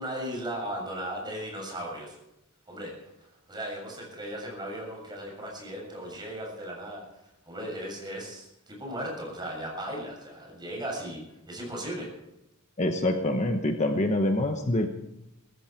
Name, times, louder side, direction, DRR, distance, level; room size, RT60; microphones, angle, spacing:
voice 1, 0.0-2.2 2.7-2.9 3.5-7.0 7.5-12.1, right 1 dB, 20° right, -1 dB, 7.2 m, -36 dB
voice 2, 12.8-14.9, left 1 dB, 35° left, 5 dB, 1.1 m, -25 dB
21.5 x 14.5 x 4.6 m, 0.88 s
head